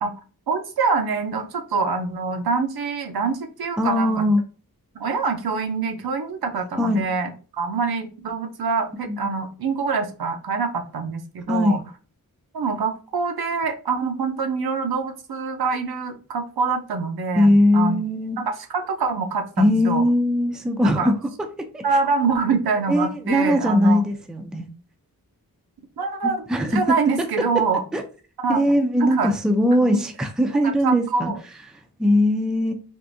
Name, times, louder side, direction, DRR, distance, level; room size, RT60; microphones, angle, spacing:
voice 1, 0.5-4.2 5.0-11.8 12.5-18.0 18.4-20.0 21.0-21.1 21.8-24.0 26.0-26.4 26.7-27.8 28.4-28.6 29.0-29.3 29.8-30.0 30.6-31.4, right 4 dB, 80° right, 5 dB, 0.6 m, -25 dB
voice 2, 3.8-4.4 6.8-7.0 9.1-9.2 11.5-11.8 17.3-18.4 19.6-21.8 22.9-24.7 26.2-26.8 27.2-27.3 27.9-28.0 28.5-31.3 32.0-32.7, left 1 dB, ahead, 6 dB, 0.4 m, -20 dB
3.5 x 2.5 x 2.5 m, 0.37 s
wide cardioid pair, 95°, 37 cm